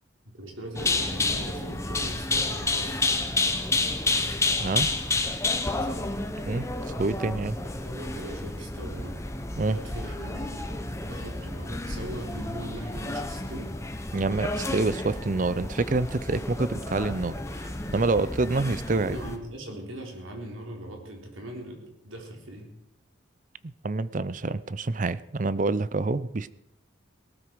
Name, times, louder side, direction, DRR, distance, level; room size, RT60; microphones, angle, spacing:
voice 1, 0.2-3.2 5.8-6.1 7.6-9.3 9.7-10.7 11.1-13.8 19.0-22.7, right 1 dB, 85° right, 1 dB, 3.8 m, -40 dB
sound 1, 0.8-19.4, left 2 dB, 15° left, 1.1 m, -30 dB
voice 2, 7.0-7.6 9.6-9.8 14.1-19.2 23.6-26.5, right 3 dB, 40° right, 16 dB, 0.5 m, -27 dB
18.5 x 13.0 x 4.7 m, 0.81 s
head